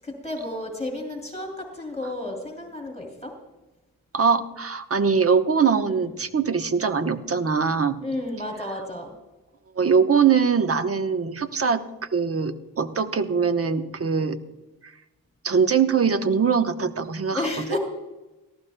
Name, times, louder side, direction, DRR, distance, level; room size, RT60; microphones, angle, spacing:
voice 1, 0.0-3.4 5.9-6.1 8.0-9.1 17.3-17.8, left 1 dB, 15° left, 2 dB, 2.9 m, -32 dB
voice 2, 4.1-8.0 9.8-11.8 12.1-14.4 15.4-17.5, right 6 dB, 30° right, 10 dB, 1.0 m, -22 dB
18.0 x 14.0 x 2.2 m, 1.1 s
hypercardioid pair, 55°, 46 cm